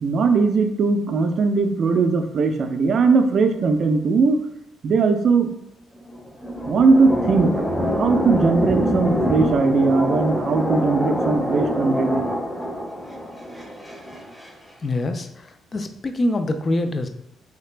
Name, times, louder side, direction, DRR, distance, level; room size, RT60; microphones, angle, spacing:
voice 1, 0.0-4.4 4.8-5.5 6.7-7.5 8.0-12.2, right 4 dB, 55° right, 6 dB, 0.4 m, -19 dB
sound 1, 6.0-14.5, equal, 15° left, 0.8 m, -25 dB
voice 2, 14.8-17.1, left 1 dB, 35° left, 7 dB, 0.4 m, -25 dB
3.3 x 2.8 x 3.3 m, 0.79 s
cardioid pair, 90°, 0 cm